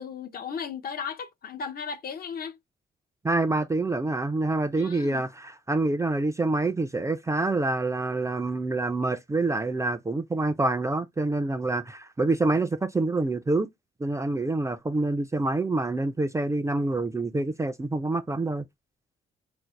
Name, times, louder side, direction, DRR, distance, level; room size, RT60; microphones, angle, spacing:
voice 1, 0.0-2.6 4.8-5.3, left 6 dB, 50° left, 0.6 m, -36 dB
voice 2, 3.2-13.7 14.0-18.6, right 2 dB, 15° right, 0.3 m, -26 dB
2.6 x 2.0 x 3.9 m
cardioid pair, 90°, 20 cm